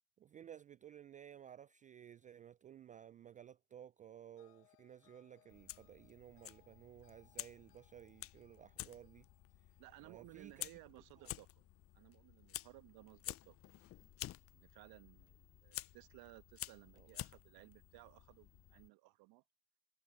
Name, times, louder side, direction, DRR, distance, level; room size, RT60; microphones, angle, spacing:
voice 1, 0.2-9.3 10.0-10.8 11.2-11.3 16.9-17.1, right 10 dB, 20° right, 0.3 m, -56 dB
sound 1, 4.4-11.5, left 19 dB, 70° left, 2.5 m, -74 dB
Fire, 5.5-18.9, left 14 dB, 30° left, 0.6 m, -51 dB
voice 2, 9.8-11.6 11.9-13.6 14.5-19.4, right 21 dB, 50° right, 1.3 m, -59 dB
hypercardioid pair, 85°, 47 cm